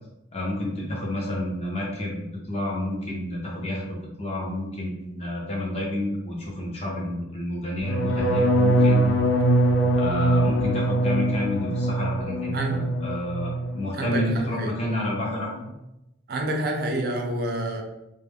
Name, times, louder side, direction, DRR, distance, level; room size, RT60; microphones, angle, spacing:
voice 1, 0.3-9.0 9.9-15.7, left 1 dB, 30° left, -3 dB, 0.6 m, -30 dB
sound 1, 7.8-13.7 14.0-14.5 14.8-15.2, right 1 dB, 80° left, 0.4 m, -23 dB
voice 2, 12.5-12.9 13.9-14.7 16.3-17.8, right 1 dB, 50° right, 2 dB, 0.4 m, -28 dB
2.2 x 2.1 x 3.4 m, 0.92 s
head